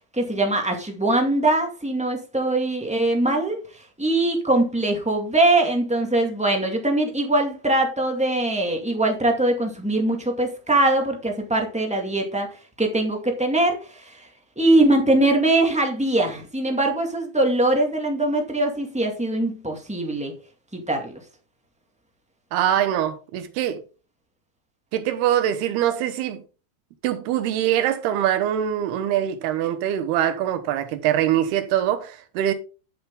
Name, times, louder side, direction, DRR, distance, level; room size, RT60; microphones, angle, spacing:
voice 1, 0.1-14.3 14.5-20.3 20.7-21.1, right 2 dB, 5° right, 0.6 m, -22 dB
voice 2, 22.5-23.8 24.9-26.4 27.0-32.5, right 11 dB, 90° right, 3.1 m, -23 dB
11.0 x 7.1 x 3.8 m
omnidirectional pair, 4.4 m